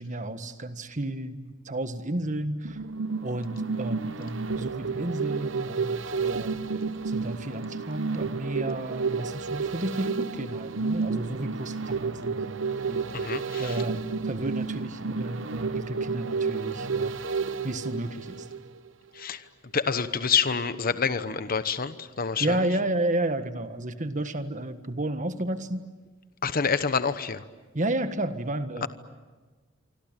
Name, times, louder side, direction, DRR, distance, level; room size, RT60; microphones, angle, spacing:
voice 1, 0.0-2.8 3.2-6.6 7.0-12.6 12.9-13.3 13.6-17.2 17.6-18.5 22.4-25.8 27.7-28.9, right 1 dB, 40° right, 9 dB, 1.6 m, -32 dB
sound 1, 2.6-18.9 19.2-19.3, right 4 dB, 65° right, 0.9 m, -31 dB
voice 2, 13.1-13.8 19.1-19.4 19.7-22.7 26.4-27.4 28.8-28.9, left 6 dB, 45° left, 12 dB, 1.1 m, -27 dB
26.5 x 25.5 x 9.0 m, 1.3 s
head